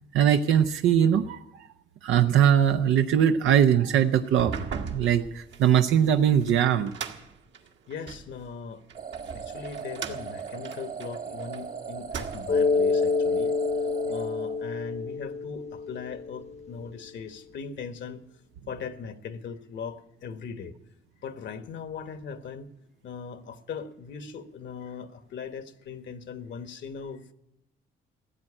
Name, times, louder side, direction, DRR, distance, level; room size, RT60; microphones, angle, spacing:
voice 1, 0.1-1.7 2.0-4.5 4.9-6.9, right 9 dB, 85° right, 7 dB, 0.6 m, -21 dB
sound 1, 4.2-8.3 8.9-11.6 12.0-12.7, right 6 dB, 65° right, 1.6 m, -38 dB
voice 2, 7.9-8.8 9.3-13.5 14.1-18.2 18.7-20.7 21.2-22.7 23.0-27.2, left 6 dB, 65° left, 9 dB, 1.2 m, -39 dB
sound 2, 8.9-15.1, right 6 dB, 45° right, 1.4 m, -39 dB
Mallet percussion, 12.5-16.9, left 4 dB, 35° left, 0.8 m, -27 dB
15.0 x 7.8 x 9.8 m, 0.86 s
cardioid pair, 90°, 20 cm